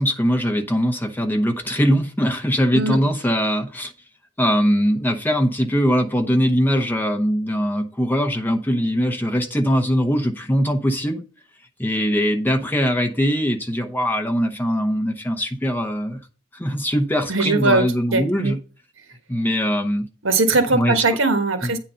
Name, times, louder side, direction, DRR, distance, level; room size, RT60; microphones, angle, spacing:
voice 1, 0.0-3.9 4.4-11.2 11.8-16.2 16.5-18.6 19.3-20.1 20.7-20.9 21.6-21.7, equal, 10° left, 4 dB, 0.8 m, -21 dB
voice 2, 17.3-17.9 18.1-18.5 20.2-21.8, right 3 dB, 75° right, 6 dB, 1.3 m, -20 dB
8.9 x 3.8 x 5.5 m, 0.37 s
head